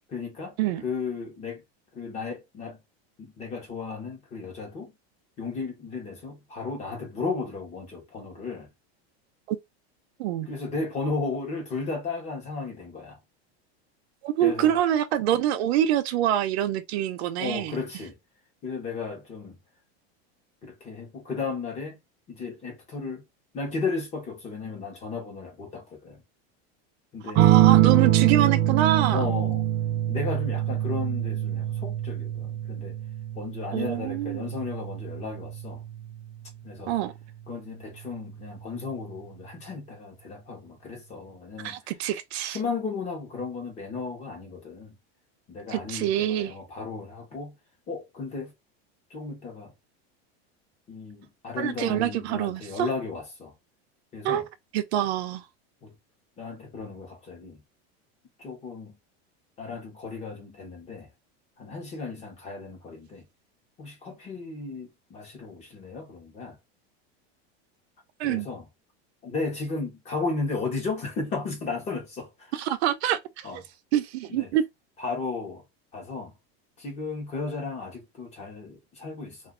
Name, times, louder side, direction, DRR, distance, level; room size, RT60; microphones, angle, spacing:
voice 1, 0.1-0.6 0.8-1.6 1.9-2.8 3.4-4.9 5.4-8.7 10.5-13.2 14.4-14.8 17.4-18.1 18.6-19.6 20.6-22.0 22.3-23.2 23.5-26.2 27.1-27.5 29.1-29.6 30.1-32.9 33.3-35.8 36.6-36.9 37.5-41.8 42.5-44.9 45.5-47.5 47.9-48.5 49.1-49.7 50.9-53.5 54.1-54.4 55.8-55.9 56.4-57.6 58.4-58.9 59.6-61.1 61.6-63.2 63.8-66.6 68.2-68.6 69.2-72.5 73.4-73.6 74.3-74.5 75.0-75.6 75.9-76.3 76.8-79.4, left 4 dB, 20° left, 0.9 m, -34 dB
voice 2, 14.2-17.7 27.3-29.3 33.7-34.5 36.9-37.1 41.6-42.6 45.7-46.5 51.6-52.9 54.2-54.4 54.7-55.4 68.2-68.5 72.5-73.6 73.9-74.6, right 12 dB, 80° right, 0.6 m, -26 dB
sound 1, 27.4-36.4 37.9-38.4, right 13 dB, 30° right, 0.4 m, -24 dB
2.5 x 2.3 x 3.6 m
supercardioid pair, 170°, 32 cm